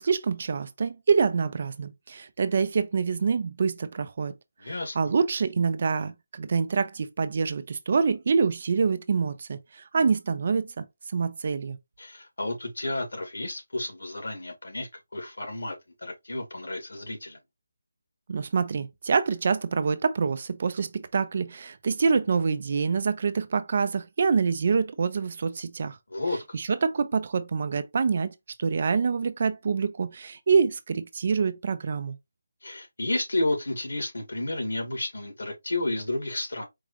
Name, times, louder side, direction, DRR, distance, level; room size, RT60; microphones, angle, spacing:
voice 1, 0.0-4.3 4.6-10.9 11.1-11.8 18.3-26.0 26.5-28.3 28.6-32.2, right 5 dB, 40° right, 0.5 m, -26 dB
voice 2, 4.6-5.0 12.0-17.4 26.1-26.4 32.6-36.6, left 2 dB, 80° left, 2.1 m, -31 dB
4.6 x 2.4 x 3.1 m
figure-of-eight pair, 170°, 0 cm